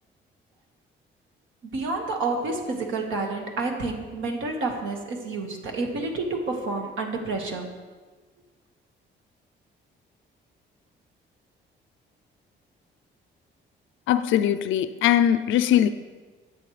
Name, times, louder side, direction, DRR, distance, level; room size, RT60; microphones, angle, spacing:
voice 1, 1.6-7.8, right 3 dB, 75° right, 1.7 m, -29 dB
voice 2, 14.1-15.9, left 10 dB, 80° left, 0.5 m, -21 dB
12.0 x 7.6 x 3.3 m
cardioid pair, 90°, 20 cm